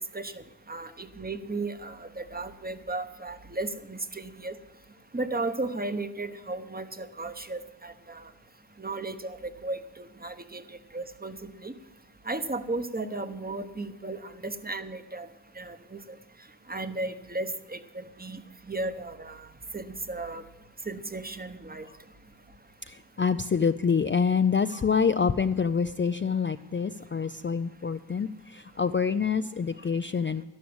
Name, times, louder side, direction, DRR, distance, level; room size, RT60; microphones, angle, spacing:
voice 1, 0.1-4.5 5.1-8.3 8.8-10.6 10.9-11.7 12.3-15.3 15.6-16.0 16.7-18.4 18.7-19.5 19.7-20.4 20.9-21.9, right 2 dB, 20° right, 10 dB, 1.0 m, -35 dB
voice 2, 22.8-30.4, left 6 dB, 30° left, 10 dB, 0.4 m, -26 dB
12.0 x 11.5 x 7.9 m, 0.98 s
wide cardioid pair, 85°, 41 cm